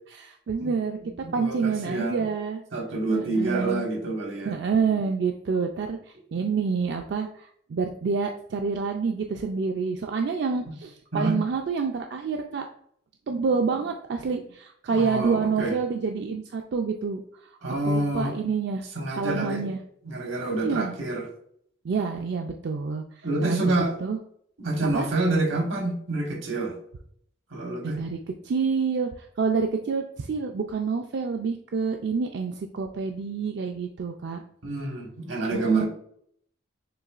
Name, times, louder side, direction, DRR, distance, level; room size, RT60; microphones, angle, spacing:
voice 1, 0.1-1.0 1.3-2.6 3.1-3.9 4.4-12.6 13.3-17.2 17.9-18.8 19.2-19.8 20.5-21.0 21.8-23.7 24.0-24.2 24.9-25.1 27.8-28.2 28.4-34.4 35.5-35.9, right 5 dB, 60° right, 4 dB, 0.3 m, -28 dB
voice 2, 1.2-2.3 2.7-4.5 11.1-11.4 14.9-15.7 17.6-18.4 18.9-19.7 20.0-21.3 23.2-24.0 24.6-26.8 27.5-28.0 34.6-35.9, right 2 dB, 85° right, 1 dB, 1.3 m, -27 dB
6.9 x 3.0 x 2.4 m, 0.66 s
head